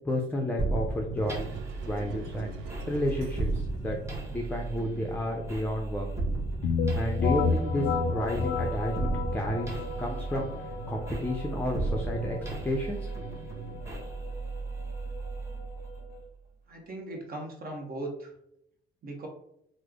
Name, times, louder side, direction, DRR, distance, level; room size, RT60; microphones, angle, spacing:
voice 1, 0.0-1.6 1.8-2.5 2.9-4.0 4.3-6.1 6.9-12.4 12.6-13.1, left 1 dB, 10° left, 0 dB, 0.5 m, -31 dB
sound 1, 0.6-16.2, right 3 dB, 15° right, 1.1 m, -35 dB
sound 2, 1.2-3.9, right 2 dB, 85° right, 0.5 m, -43 dB
sound 3, 6.6-16.2, left 4 dB, 75° left, 0.4 m, -32 dB
voice 2, 16.7-18.3 19.0-19.3, right 2 dB, 50° right, 1 dB, 1.0 m, -38 dB
3.1 x 2.1 x 3.6 m, 0.76 s
cardioid pair, 90°, 20 cm